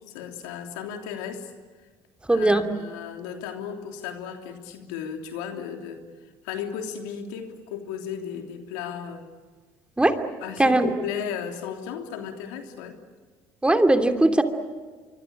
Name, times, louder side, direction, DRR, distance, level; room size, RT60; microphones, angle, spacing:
voice 1, 0.1-1.5 2.3-6.0 6.4-9.3 10.4-13.0, left 8 dB, 90° left, 5 dB, 3.2 m, -35 dB
voice 2, 2.3-2.6 10.0-10.2 10.6-10.9 13.6-14.4, right 2 dB, 10° right, 7 dB, 2.8 m, -19 dB
25.5 x 24.5 x 8.8 m, 1.4 s
supercardioid pair, 85°, 9 cm